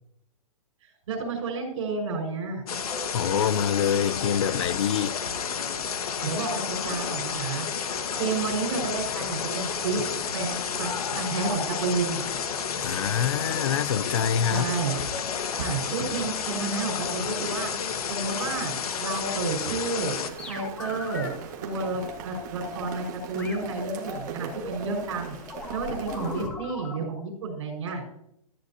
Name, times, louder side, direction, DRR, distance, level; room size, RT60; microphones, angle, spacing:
voice 1, 1.1-2.6 6.2-7.7 8.2-10.0 10.3-12.2 14.5-15.0 15.6-17.7 18.1-18.7 19.0-20.2 20.5-21.3 21.6-25.3 25.7-28.0, right 4 dB, 50° right, 5.6 m, -30 dB
sound 1, 2.7-20.3, left 6 dB, 80° left, 1.6 m, -31 dB
voice 2, 3.1-5.2 12.8-14.7, left 8 dB, 55° left, 0.6 m, -25 dB
sound 2, 20.3-21.3 21.8-23.0 23.4-27.0, left 3 dB, 5° left, 0.5 m, -39 dB
Rain, 20.3-26.5, right 6 dB, 30° right, 1.8 m, -40 dB
15.5 x 13.5 x 2.9 m
hypercardioid pair, 175°, 19 cm